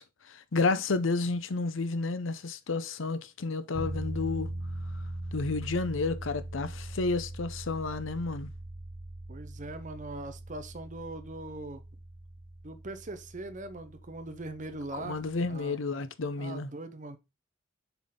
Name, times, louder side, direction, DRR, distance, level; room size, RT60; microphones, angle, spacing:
voice 1, 0.0-4.5 5.3-8.5 14.9-16.7, left 3 dB, 80° left, 0.7 m, -31 dB
sound 1, 3.7-15.6, right 1 dB, 70° right, 0.9 m, -41 dB
voice 2, 9.3-11.8 12.6-15.2 15.5-15.8 16.4-17.2, right 2 dB, 40° right, 0.8 m, -41 dB
7.0 x 4.0 x 3.8 m
head